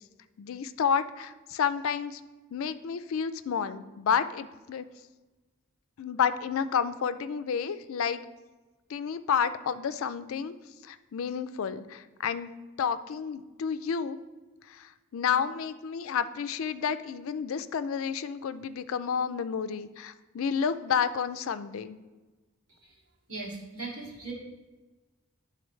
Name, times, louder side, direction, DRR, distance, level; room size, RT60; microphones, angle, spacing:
voice 1, 0.4-2.2 2.5-4.9 6.0-8.2 8.9-10.5 10.8-12.5 12.8-14.2 14.7-22.0, left 7 dB, 70° left, 13 dB, 0.4 m, -30 dB
voice 2, 23.3-24.3, right 3 dB, 90° right, -4 dB, 2.2 m, -38 dB
11.0 x 3.9 x 3.1 m, 1.2 s
head